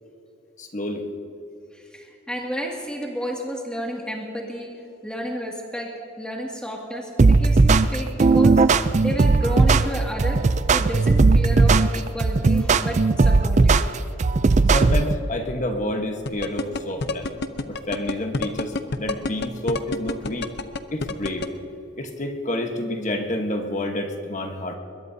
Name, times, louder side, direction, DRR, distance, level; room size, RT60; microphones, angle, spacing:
voice 1, 0.6-1.1 14.7-17.3 17.7-20.5 20.9-21.5 22.0-24.8, left 1 dB, 35° left, 4 dB, 1.3 m, -29 dB
voice 2, 1.7-4.8 5.0-13.8, equal, 5° left, -1 dB, 2.3 m, -31 dB
sound 1, 7.2-15.2, right 3 dB, 35° right, 0.4 m, -17 dB
sound 2, 16.3-21.5, left 3 dB, 55° left, 0.7 m, -27 dB
22.0 x 21.5 x 2.8 m, 2.9 s
head